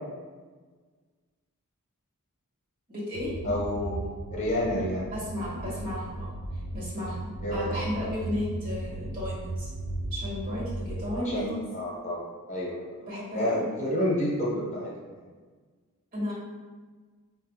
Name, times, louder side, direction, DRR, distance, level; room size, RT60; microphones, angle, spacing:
voice 1, 2.9-3.6 5.1-6.4 6.7-9.7 10.1-11.6 13.1-13.7 16.1-16.3, left 1 dB, 40° right, -7 dB, 1.2 m, -34 dB
sound 1, 3.1-11.2, right 2 dB, 90° right, 0.4 m, -36 dB
voice 2, 3.4-4.0 4.3-5.1 7.4-7.7 11.1-12.2 12.5-12.9 13.3-15.2, left 1 dB, 30° left, -4 dB, 1.0 m, -29 dB
4.9 x 2.5 x 2.8 m, 1.4 s
head